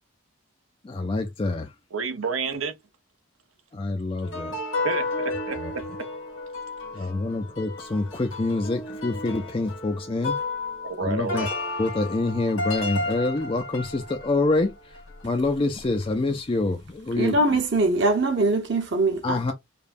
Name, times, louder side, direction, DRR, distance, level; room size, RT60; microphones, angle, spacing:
voice 1, 0.8-1.7 3.7-4.5 5.6-5.7 6.9-10.4 11.0-11.5 11.8-14.7 15.2-17.4 19.2-19.5, left 2 dB, 25° left, 0.4 m, -26 dB
voice 2, 1.9-2.7 4.8-5.8 7.0-7.1 10.8-11.5, right 4 dB, 85° right, 0.9 m, -30 dB
sound 1, 4.2-15.5 15.8-15.9, left 2 dB, 80° left, 1.7 m, -33 dB
voice 3, 17.2-19.5, right 2 dB, 55° right, 1.0 m, -22 dB
5.1 x 2.2 x 2.5 m
head